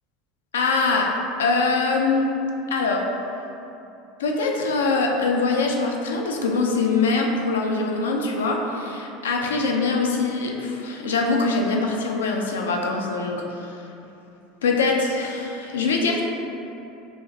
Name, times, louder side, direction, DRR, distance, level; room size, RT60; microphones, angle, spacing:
voice 1, 0.5-1.1 1.4-2.3 2.7-3.0 4.2-13.8 14.6-16.3, left 3 dB, 90° left, 1 dB, 0.4 m, -23 dB
4.6 x 2.2 x 2.7 m, 2.9 s
hypercardioid pair, 95°, 0 cm